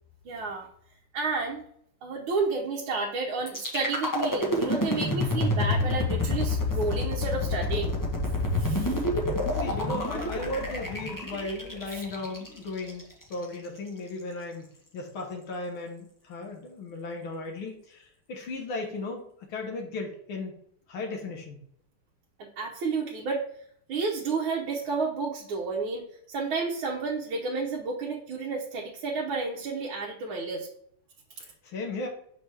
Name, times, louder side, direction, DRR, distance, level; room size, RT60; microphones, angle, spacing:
voice 1, 0.2-0.7 1.1-1.6 2.0-8.0 8.6-9.0 11.9-12.0 22.4-23.4 23.9-30.7, right 4 dB, 70° right, -1 dB, 1.6 m, -31 dB
sound 1, 3.5-13.4, left 2 dB, 30° left, 0.3 m, -28 dB
voice 2, 9.5-13.0 13.3-14.7 14.9-20.5 20.9-21.6 31.4-32.1, left 2 dB, 75° left, 1 dB, 1.9 m, -36 dB
5.9 x 5.9 x 3.3 m, 0.67 s
omnidirectional pair, 2.4 m